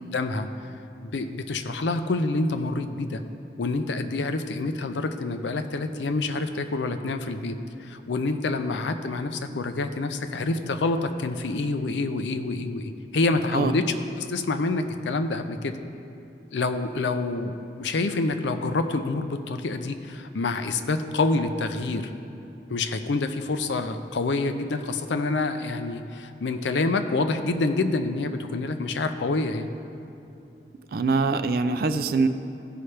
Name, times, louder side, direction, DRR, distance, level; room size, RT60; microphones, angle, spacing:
voice 1, 0.1-0.5 1.0-3.2 3.6-13.8 14.2-15.8 16.5-22.1 22.7-29.7, left 3 dB, 85° left, 9 dB, 0.5 m, -27 dB
voice 2, 30.9-32.3, right 4 dB, 55° right, 10 dB, 0.4 m, -23 dB
15.5 x 5.6 x 3.3 m, 2.7 s
head